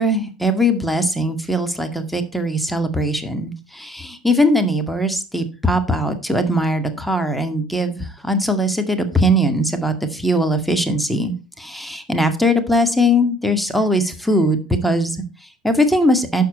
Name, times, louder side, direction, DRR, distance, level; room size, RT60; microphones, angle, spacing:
voice 1, 0.0-16.4, equal, ahead, 6 dB, 2.0 m, -20 dB
11.5 x 6.9 x 4.3 m, 0.31 s
figure-of-eight pair, 80°, 4 cm